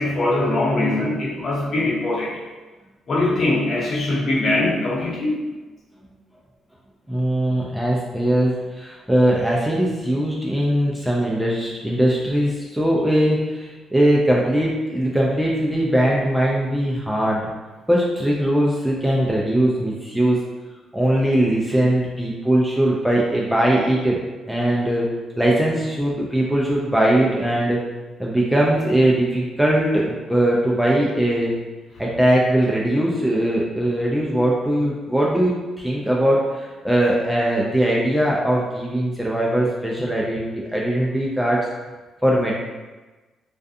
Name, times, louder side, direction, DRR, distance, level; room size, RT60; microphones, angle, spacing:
voice 1, 0.0-2.4 3.1-5.4, left 2 dB, 50° left, -6 dB, 0.8 m, -22 dB
voice 2, 7.1-17.4 17.9-20.4 20.9-24.2 24.5-25.1 25.4-27.8 28.2-31.5 32.0-41.7 42.2-42.5, right 1 dB, 5° right, -4 dB, 0.4 m, -20 dB
2.4 x 2.3 x 2.5 m, 1.2 s
cardioid pair, 90°, 0 cm